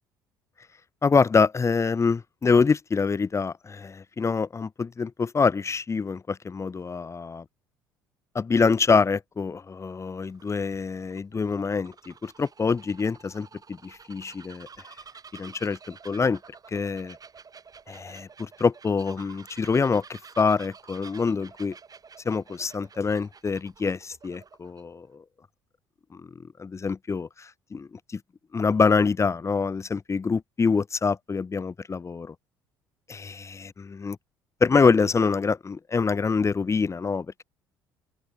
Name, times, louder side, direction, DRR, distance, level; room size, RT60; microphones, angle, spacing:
voice 1, 1.0-7.4 8.3-14.7 15.3-16.4 16.7-17.2 17.9-21.7 22.2-25.2 26.1-26.3 26.6-28.2 28.5-32.3 33.1-34.2 34.6-37.4, left 5 dB, 25° left, 1.0 m, -25 dB
Bird vocalization bird call bird song, 9.8-24.8, right 5 dB, 35° right, 6.7 m, -50 dB
open air
hypercardioid pair, 55°, 11 cm